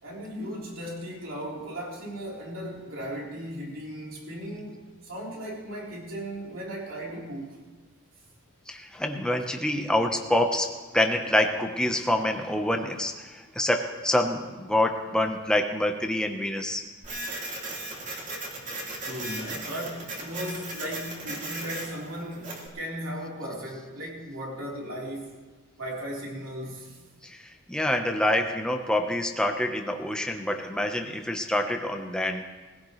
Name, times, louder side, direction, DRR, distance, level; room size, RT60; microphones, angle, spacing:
voice 1, 0.0-7.6 19.0-25.4 25.8-27.0, equal, 70° right, -4 dB, 3.9 m, -36 dB
voice 2, 8.7-16.8 27.2-32.4, left 1 dB, 5° left, 3 dB, 1.0 m, -26 dB
Printer, 17.0-22.7, right 2 dB, 35° right, 2.6 m, -37 dB
21.0 x 16.0 x 3.2 m, 1.3 s
head